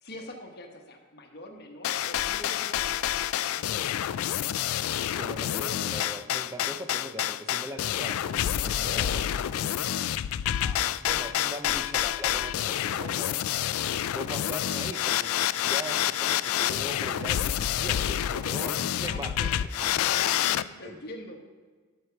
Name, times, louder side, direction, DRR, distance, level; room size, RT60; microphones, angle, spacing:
voice 1, 0.0-4.2 8.8-9.3 13.4-13.6 18.3-18.7 19.0-19.5 20.2-21.4, left 1 dB, 50° left, 2 dB, 1.3 m, -43 dB
sound 1, 1.8-20.6, left 11 dB, 80° left, 0.3 m, -28 dB
voice 2, 5.1-9.8 10.6-13.4 14.1-20.2 20.6-21.0, right 1 dB, 15° right, 5 dB, 0.5 m, -41 dB
12.0 x 4.8 x 5.8 m, 1.5 s
head